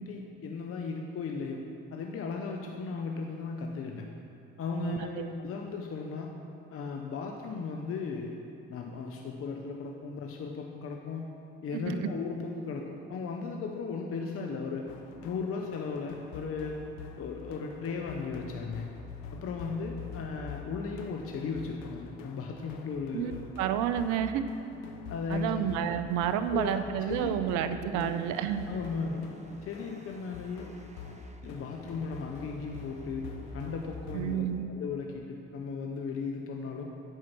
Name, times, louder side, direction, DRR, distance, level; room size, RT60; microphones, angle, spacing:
voice 1, 0.0-1.6 1.9-4.1 4.6-6.4 6.7-8.4 8.7-11.3 11.6-14.9 15.2-16.8 17.2-18.9 19.3-23.4 25.1-25.7 26.5-26.8 27.1-27.3 27.9-28.1 28.7-29.3 29.6-30.7 31.4-36.9, left 4 dB, 50° left, 1 dB, 0.8 m, -36 dB
voice 2, 4.8-5.3 11.9-12.1 23.1-23.3 23.6-24.4 25.3-28.7 34.1-34.6, right 9 dB, 70° right, 10 dB, 0.6 m, -30 dB
sound 1, 14.9-34.4, left 5 dB, 80° left, 0.7 m, -46 dB
sound 2, 28.0-34.0, right 2 dB, 25° right, 0.8 m, -53 dB
9.9 x 4.7 x 6.0 m, 2.7 s
hypercardioid pair, 60°, 30 cm